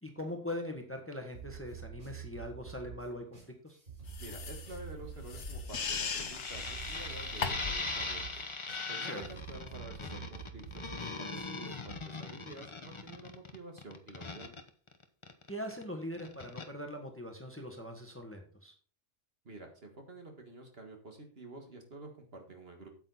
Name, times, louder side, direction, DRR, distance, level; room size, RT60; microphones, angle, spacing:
voice 1, 0.0-3.2 3.6-3.8 9.0-9.2 15.5-18.7, left 1 dB, 10° left, 4 dB, 1.4 m, -41 dB
sound 1, 1.3-12.0, right 8 dB, 80° right, 3.8 m, -48 dB
sound 2, 4.1-7.9, left 5 dB, 65° left, 1.3 m, -39 dB
voice 2, 4.2-8.5 8.9-14.5 19.4-22.9, right 2 dB, 50° right, 3 dB, 2.0 m, -49 dB
sound 3, 5.8-15.8 16.1-16.7, left 3 dB, 25° left, 0.8 m, -40 dB
8.7 x 8.1 x 4.0 m, 0.42 s
omnidirectional pair, 1.3 m